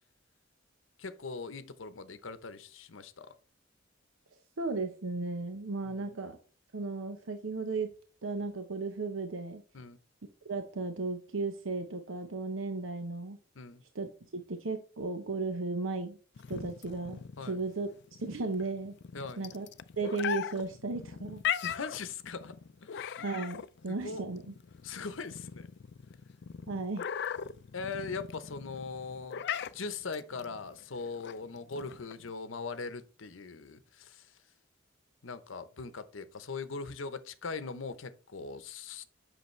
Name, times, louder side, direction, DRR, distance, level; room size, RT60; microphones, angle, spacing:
voice 1, 1.0-3.3 5.9-6.2 9.7-10.0 13.5-13.8 17.4-17.6 19.1-19.5 21.6-22.5 22.8-23.2 23.9-24.2 24.8-25.7 27.7-29.4 29.7-34.4 35.2-39.0, left 4 dB, 75° left, 0.8 m, -40 dB
voice 2, 4.6-6.4 6.7-7.9 8.2-9.6 10.4-13.4 13.9-16.2 16.5-17.9 18.2-19.0 19.4-19.7 20.0-21.4 23.2-24.5 26.7-27.1, right 3 dB, 80° right, 0.8 m, -35 dB
sound 1, 16.4-32.3, left 8 dB, 60° left, 0.4 m, -39 dB
8.0 x 6.1 x 3.2 m
head